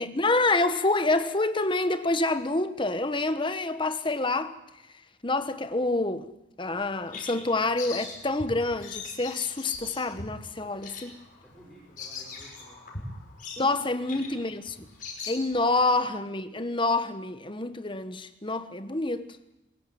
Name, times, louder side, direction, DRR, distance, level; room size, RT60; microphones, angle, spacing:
voice 1, 0.0-4.6 5.2-6.3 6.6-11.2 13.6-14.6 15.3-19.4, left 2 dB, 25° left, 1.2 m, -27 dB
Bird vocalization bird call bird song, 6.7-15.9, left 4 dB, 45° left, 5.5 m, -41 dB
voice 2, 11.4-13.1 14.1-14.5 15.9-16.0, equal, ahead, 5.9 m, -54 dB
23.5 x 15.0 x 9.4 m
head